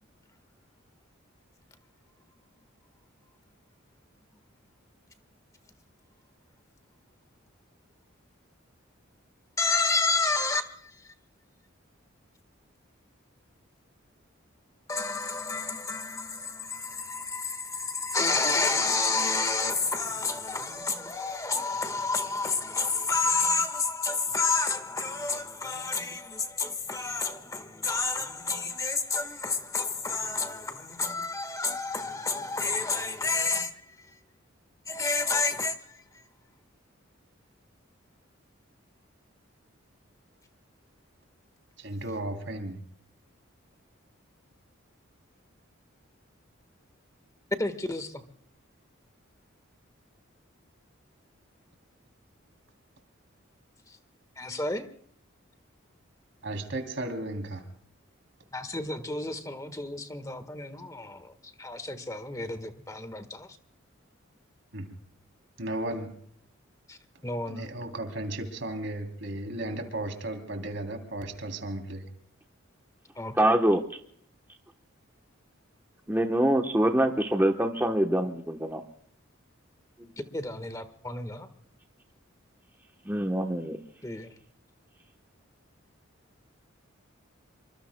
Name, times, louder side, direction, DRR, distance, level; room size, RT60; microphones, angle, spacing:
voice 1, 9.6-11.1 14.9-34.2 34.8-36.2 47.6-48.2 53.9-54.0 54.4-54.9 58.5-63.6 66.9-67.7 73.1-73.3 80.3-81.5 84.0-84.3, left 3 dB, 15° left, 1.4 m, -30 dB
voice 2, 41.8-42.8 56.4-57.6 64.7-64.9 65.6-66.2 67.5-72.0, right 1 dB, 60° right, 3.0 m, -35 dB
voice 3, 73.4-73.8 76.1-78.8 83.1-83.8, right 1 dB, 10° right, 0.9 m, -24 dB
27.5 x 24.0 x 2.2 m
head